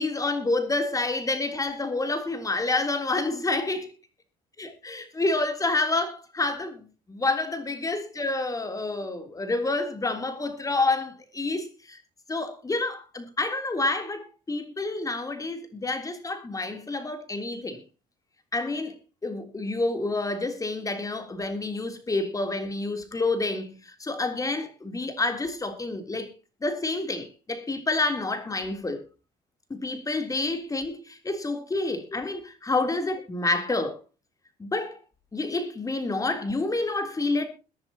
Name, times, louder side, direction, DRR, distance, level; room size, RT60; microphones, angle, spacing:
voice 1, 0.0-3.9 4.6-12.0 12.3-17.8 18.5-19.0 19.2-26.3 26.6-29.0 29.7-34.0 34.6-35.0 35.3-37.5, left 2 dB, 20° left, 3.5 m, -28 dB
22.5 x 10.5 x 2.9 m
cardioid pair, 110°, 17 cm